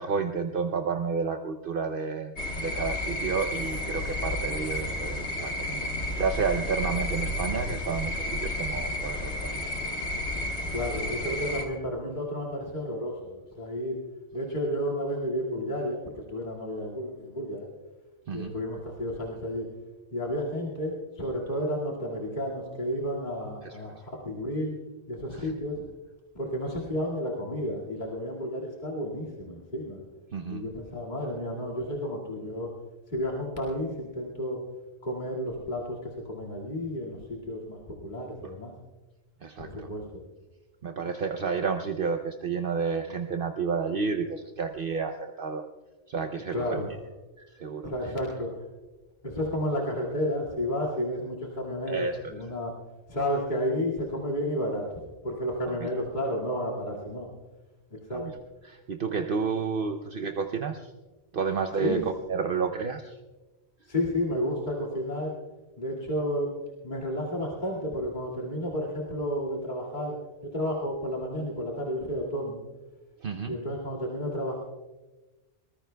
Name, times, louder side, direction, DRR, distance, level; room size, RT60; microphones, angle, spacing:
voice 1, 0.0-5.9 6.2-9.8 18.3-18.5 23.6-23.9 25.3-25.5 30.3-30.6 38.4-38.5 39.4-39.9 40.8-45.6 46.1-46.8 47.4-47.9 51.9-52.3 55.8-55.9 58.1-58.3 58.7-60.9 61.3-62.0 62.3-63.2 73.2-73.5, right 5 dB, 60° right, 6 dB, 0.9 m, -31 dB
sound 1, 2.4-11.7, left 1 dB, 90° left, 1.9 m, -32 dB
voice 2, 10.7-14.0 14.3-17.7 18.3-19.7 20.1-24.8 25.1-25.8 26.3-30.0 30.5-32.7 33.1-34.6 35.0-38.7 39.6-40.1 46.5-46.9 47.8-48.5 49.2-52.7 53.1-54.8 55.2-57.3 58.1-58.2 61.8-62.0 63.9-65.3 65.8-66.5 66.8-70.1 70.4-72.6 73.5-74.6, equal, 45° left, -4 dB, 2.3 m, -31 dB
23.5 x 20.0 x 2.3 m, 1.2 s
omnidirectional pair, 1.1 m